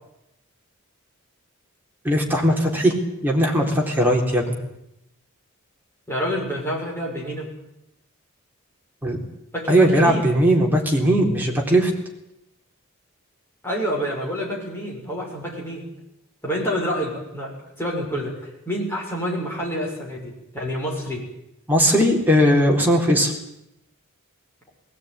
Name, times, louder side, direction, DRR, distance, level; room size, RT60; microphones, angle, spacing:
voice 1, 2.0-2.9 3.2-4.6 9.0-9.2 9.7-11.9 21.7-23.3, equal, 10° right, -1 dB, 3.9 m, -18 dB
voice 2, 6.1-7.5 9.5-10.3 13.6-15.8 16.4-21.2, equal, 10° left, -3 dB, 6.6 m, -28 dB
19.5 x 17.0 x 9.6 m, 0.84 s
head